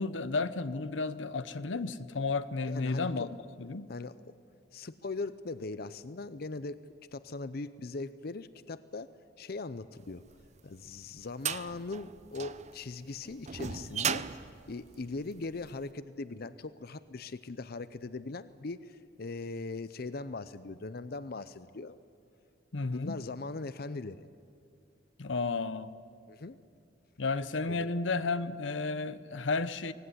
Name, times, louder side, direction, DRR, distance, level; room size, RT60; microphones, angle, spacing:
voice 1, 0.0-3.3 3.6-3.9 22.7-23.2 25.2-25.9 27.2-29.9, left 3 dB, 85° left, 0.8 m, -32 dB
voice 2, 2.6-3.3 3.9-4.2 4.7-6.8 7.1-10.2 10.6-22.0 22.8-24.3 26.3-26.6 27.7-27.9, left 3 dB, 55° left, 0.6 m, -40 dB
sound 1, 10.4-15.7, right 7 dB, 40° right, 0.6 m, -37 dB
24.0 x 19.0 x 9.8 m
head